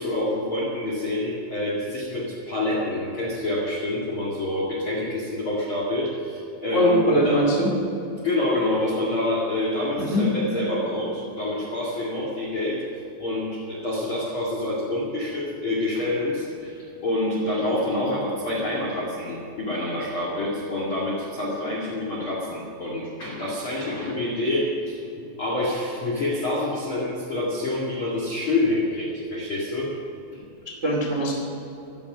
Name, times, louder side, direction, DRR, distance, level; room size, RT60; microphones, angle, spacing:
voice 1, 0.0-7.5 8.2-12.8 13.2-29.9 30.3-30.4, left 1 dB, 55° left, -4 dB, 1.4 m, -27 dB
voice 2, 6.7-7.7 10.0-10.3 30.6-31.3, equal, 85° right, -2 dB, 0.6 m, -21 dB
16.0 x 12.5 x 6.1 m, 3.0 s
omnidirectional pair, 6.0 m